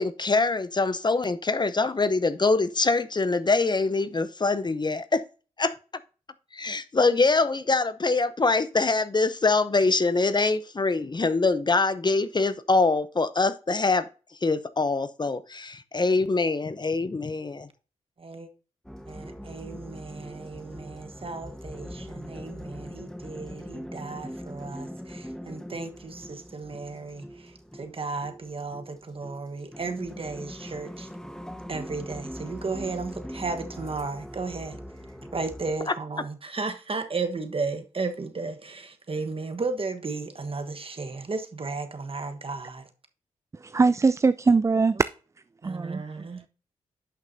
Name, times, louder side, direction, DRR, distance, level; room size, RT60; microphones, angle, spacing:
voice 1, 0.0-5.2 5.6-5.7 6.5-14.1 14.4-17.7 35.9-36.0, left 3 dB, 30° left, 0.7 m, -24 dB
voice 2, 18.2-18.5 19.1-31.1 31.7-34.8 35.3-42.9 45.6-46.5, right 4 dB, 40° right, 1.2 m, -34 dB
sound 1, 18.8-35.7, equal, 5° left, 1.2 m, -41 dB
voice 3, 43.6-45.0 45.6-46.1, right 4 dB, 20° right, 0.3 m, -21 dB
11.0 x 5.9 x 2.7 m
supercardioid pair, 40°, 14 cm